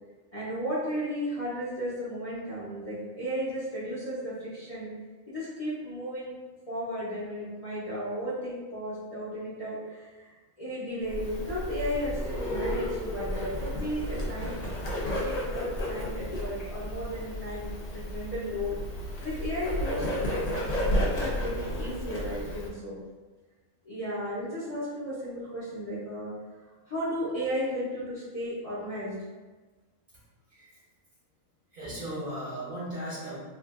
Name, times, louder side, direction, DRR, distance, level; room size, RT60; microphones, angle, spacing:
voice 1, 0.3-4.9 5.3-6.3 6.7-14.5 15.0-18.8 19.2-20.1 21.0-23.0 23.8-26.3 26.9-29.2, equal, 35° left, -10 dB, 0.7 m, -34 dB
Bird, 11.1-22.7, equal, 60° left, 0.4 m, -32 dB
voice 2, 30.5-30.8 31.7-33.4, right 1 dB, 45° right, -8 dB, 0.9 m, -37 dB
3.4 x 2.4 x 2.4 m, 1.3 s
omnidirectional pair, 1.4 m